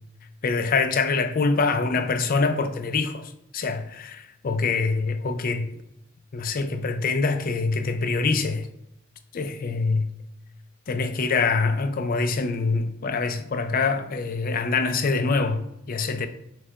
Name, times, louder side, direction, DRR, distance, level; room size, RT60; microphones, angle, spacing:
voice 1, 0.4-3.2 3.5-5.7 6.3-8.7 9.3-10.1 10.9-16.3, left 4 dB, 45° left, 0.4 m, -25 dB
6.3 x 2.3 x 3.4 m
head